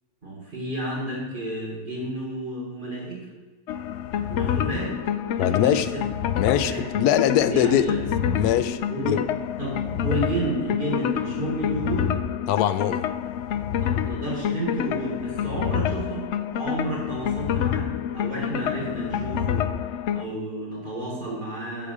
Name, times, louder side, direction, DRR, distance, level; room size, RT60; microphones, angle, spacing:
voice 1, 0.2-3.3 4.1-5.0 5.4-5.7 6.3-6.8 7.4-8.4 8.9-9.1 9.6-12.2 13.8-17.9 18.1-19.7 20.1-21.9, right 1 dB, 30° right, 3.9 m, -31 dB
sound 1, 3.7-20.2, left 9 dB, 65° left, 0.7 m, -27 dB
voice 2, 5.4-5.9 6.4-7.9 8.4-8.8 9.1-9.2 12.5-13.1, left 10 dB, 85° left, 1.1 m, -22 dB
11.0 x 5.1 x 8.4 m
omnidirectional pair, 1.6 m